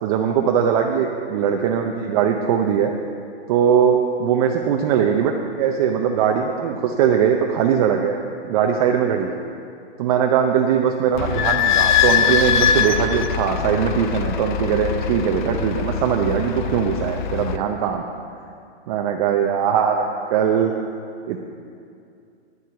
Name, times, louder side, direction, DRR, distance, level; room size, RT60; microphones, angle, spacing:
voice 1, 0.0-2.9 3.5-8.2 8.5-9.4 10.0-18.0 18.9-20.7 21.3-21.4, right 8 dB, 35° right, 2 dB, 0.7 m, -20 dB
Idling / Squeak, 11.2-17.6, left 8 dB, 45° left, 0.6 m, -22 dB
11.0 x 7.5 x 8.1 m, 2.5 s
hypercardioid pair, 155°, 33 cm